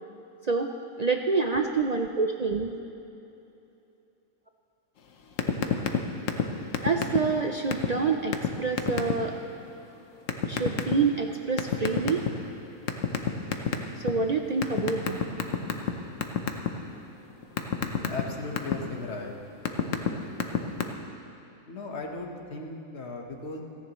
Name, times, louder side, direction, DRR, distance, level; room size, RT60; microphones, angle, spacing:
voice 1, 1.0-2.7 6.8-9.3 10.4-12.2 14.0-15.2, right 4 dB, 60° right, 4 dB, 0.4 m, -27 dB
sound 1, 5.4-6.0 6.3-6.5 6.7-7.4 7.7-7.9 8.3-8.5 8.8-9.1 10.3-10.9 11.6-12.5 12.9-14.1 14.6-15.9 16.2-16.7 17.1-18.8 19.4-20.1 20.4-20.8, left 8 dB, 70° left, 1.2 m, -25 dB
voice 2, 18.1-19.3 21.7-23.6, left 3 dB, 50° left, 1 dB, 1.6 m, -37 dB
29.0 x 10.5 x 3.1 m, 2.9 s
omnidirectional pair, 1.4 m